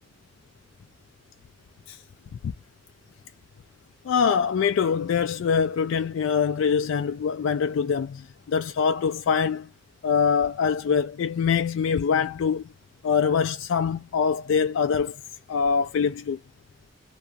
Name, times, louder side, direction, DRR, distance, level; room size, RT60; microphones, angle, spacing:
voice 1, 4.0-9.7 10.0-12.6 13.0-15.2 15.5-16.4, left 6 dB, 75° left, 0.3 m, -24 dB
2.4 x 2.2 x 2.6 m
head